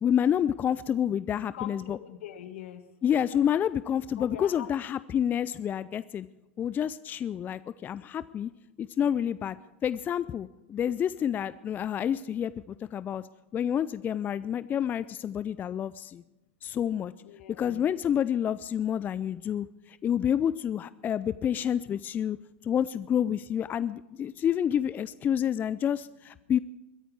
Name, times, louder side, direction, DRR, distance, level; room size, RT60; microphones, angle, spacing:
voice 1, 0.0-2.0 3.0-6.3 6.6-8.5 8.8-9.6 9.8-13.2 13.5-16.2 16.6-17.1 17.6-22.4 22.6-26.6, left 9 dB, 25° left, 16 dB, 0.4 m, -28 dB
voice 2, 1.3-2.8 4.2-5.0 17.2-18.0, left 11 dB, 70° left, 9 dB, 1.6 m, -43 dB
22.5 x 10.0 x 4.7 m, 1.0 s
hypercardioid pair, 100°, 7 cm